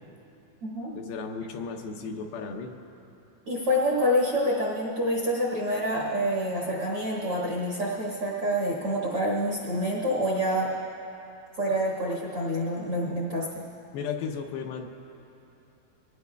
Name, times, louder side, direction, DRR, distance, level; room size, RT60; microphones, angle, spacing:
voice 1, 0.9-2.8 13.9-14.9, left 5 dB, 80° left, 3 dB, 2.6 m, -34 dB
voice 2, 3.5-10.7 11.6-13.6, equal, 45° right, -4 dB, 2.0 m, -27 dB
23.5 x 17.5 x 2.3 m, 2.8 s
omnidirectional pair, 4.5 m